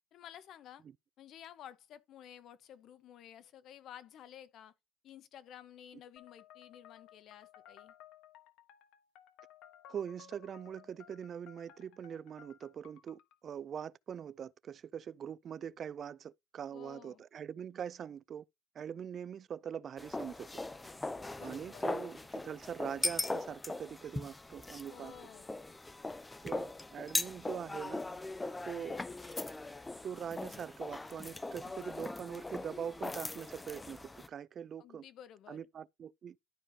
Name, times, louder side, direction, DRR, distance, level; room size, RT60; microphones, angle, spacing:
voice 1, 0.1-0.8 1.2-4.7 5.0-7.9 16.7-17.2 21.4-22.0 24.9-25.5 34.8-35.7, left 10 dB, 60° left, 0.9 m, -53 dB
sound 1, 6.2-13.4, left 10 dB, 80° left, 1.1 m, -58 dB
voice 2, 9.9-18.4 18.8-20.5 21.4-25.1 26.4-28.0 28.6-29.0 30.0-35.0 35.5-36.4, right 8 dB, 45° right, 0.3 m, -43 dB
sound 2, 20.0-34.3, left 2 dB, 15° left, 0.5 m, -40 dB
12.0 x 4.9 x 2.7 m
cardioid pair, 120°, 0 cm